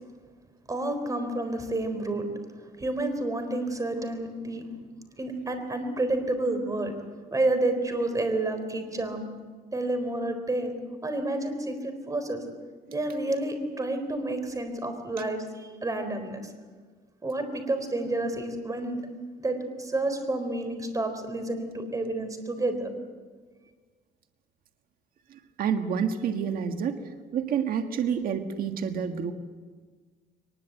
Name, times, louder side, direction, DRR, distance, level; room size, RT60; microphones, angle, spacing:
voice 1, 0.7-2.3 2.8-4.6 5.2-6.9 7.3-9.3 9.7-10.7 11.0-12.4 12.9-16.5 17.2-19.0 19.4-22.9, right 2 dB, 20° right, 8 dB, 4.2 m, -29 dB
voice 2, 25.6-27.0 27.3-29.3, right 7 dB, 60° right, 6 dB, 1.7 m, -28 dB
23.0 x 20.5 x 8.2 m, 1.5 s
cardioid pair, 110°, 17 cm